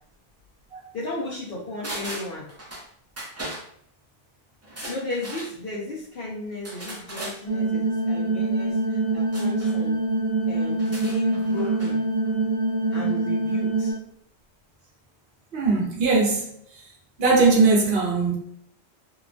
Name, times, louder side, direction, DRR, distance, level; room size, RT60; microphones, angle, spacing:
voice 1, 0.9-2.5 4.9-10.0 10.5-12.0 12.9-13.9, left 2 dB, 65° left, 0.9 m, -34 dB
sound 1, 1.8-2.9 3.2-3.6 4.6-5.5 6.6-7.4 9.3-9.7 10.7-11.9 12.2-12.3, right 1 dB, 20° right, 0.4 m, -37 dB
sound 2, 7.5-13.9, right 2 dB, 35° left, 1.0 m, -24 dB
voice 2, 15.5-16.5 17.2-18.4, right 3 dB, 65° right, 0.9 m, -19 dB
2.9 x 2.1 x 2.5 m
omnidirectional pair, 1.1 m